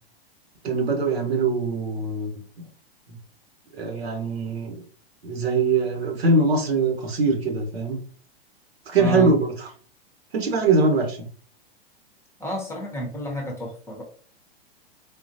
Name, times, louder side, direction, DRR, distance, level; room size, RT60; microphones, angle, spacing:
voice 1, 0.6-2.3 2.6-2.7 3.7-4.8 5.2-8.0 8.9-9.7 10.3-11.2, right 3 dB, 80° right, 3 dB, 1.2 m, -22 dB
voice 2, 9.0-9.3 12.4-14.0, right 1 dB, 10° left, 0 dB, 0.8 m, -30 dB
3.7 x 2.4 x 2.7 m, 0.43 s
hypercardioid pair, 115°, 31 cm